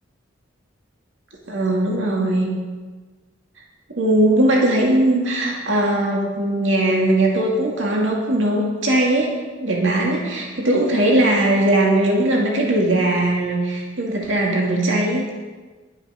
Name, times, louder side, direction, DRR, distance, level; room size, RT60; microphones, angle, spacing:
voice 1, 1.5-2.5 3.9-9.3 9.6-15.3, right 1 dB, 75° right, -2 dB, 2.1 m, -19 dB
11.0 x 9.8 x 5.6 m, 1.4 s
head